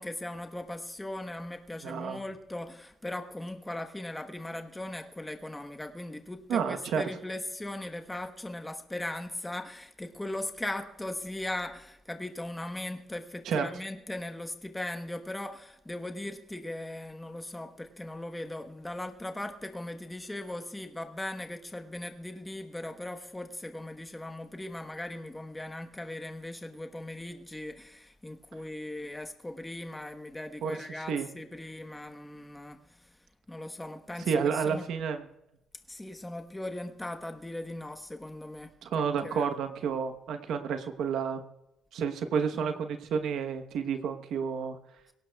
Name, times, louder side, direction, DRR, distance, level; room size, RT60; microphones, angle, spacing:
voice 1, 0.0-33.1 33.5-34.8 35.9-39.5 42.5-42.9, left 1 dB, 10° left, 1.1 m, -39 dB
voice 2, 1.8-2.2 6.5-7.0 13.4-13.6 30.6-31.3 34.2-35.3 38.8-41.4 41.9-44.8, right 6 dB, 80° right, 1.0 m, -30 dB
22.5 x 17.5 x 2.3 m
cardioid pair, 90°, 0 cm